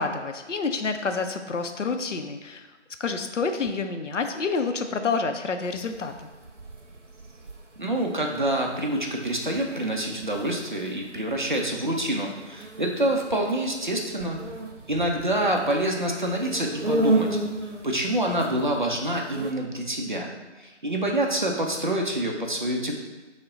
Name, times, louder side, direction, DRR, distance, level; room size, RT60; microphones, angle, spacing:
voice 1, 0.0-2.7 3.0-6.3, left 4 dB, 85° left, 7 dB, 0.6 m, -28 dB
sound 1, 5.6-19.5, right 1 dB, 90° right, 0.7 m, -34 dB
voice 2, 7.8-14.4 14.9-17.4 17.8-20.3 20.6-22.9, right 1 dB, 45° right, 1 dB, 0.5 m, -26 dB
5.0 x 2.1 x 3.7 m, 1.2 s
figure-of-eight pair, 160°, 36 cm